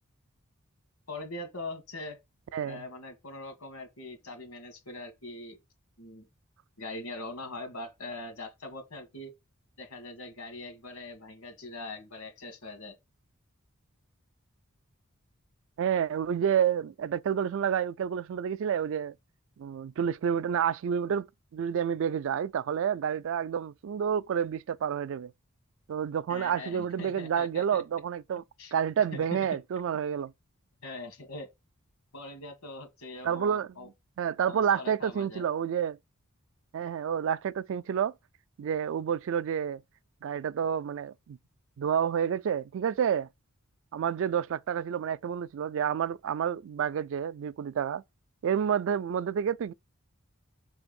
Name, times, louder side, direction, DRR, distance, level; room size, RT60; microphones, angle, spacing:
voice 1, 1.1-2.2 2.6-5.6 6.0-6.3 6.8-9.3 9.8-13.0 26.3-27.8 28.6-28.7 29.1-29.4 30.8-31.5 32.1-33.9 34.5-35.4, left 2 dB, 80° left, 1.8 m, -42 dB
voice 2, 2.5-2.8 15.8-19.1 19.6-21.3 21.5-25.3 25.9-28.4 28.7-30.3 33.2-33.7 34.2-36.0 36.7-38.1 38.6-39.8 40.2-41.4 41.8-43.3 43.9-48.0 48.4-49.7, right 8 dB, 60° right, 0.3 m, -29 dB
5.8 x 3.4 x 5.2 m
head